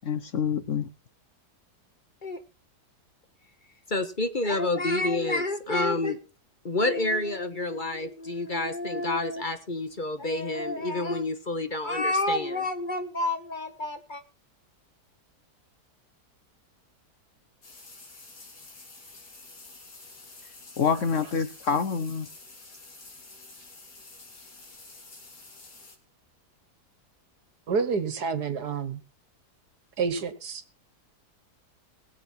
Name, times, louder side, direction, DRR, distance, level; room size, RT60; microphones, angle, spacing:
voice 1, 0.0-0.9 20.8-22.3, left 6 dB, 55° left, 1.0 m, -26 dB
voice 2, 3.9-6.2 6.6-14.2, left 2 dB, 30° left, 1.4 m, -28 dB
sound 1, 17.6-26.0, left 3 dB, 75° left, 3.7 m, -49 dB
voice 3, 27.7-29.0 30.0-30.6, right 5 dB, 70° right, 1.9 m, -28 dB
21.0 x 7.6 x 4.4 m
omnidirectional pair, 1.8 m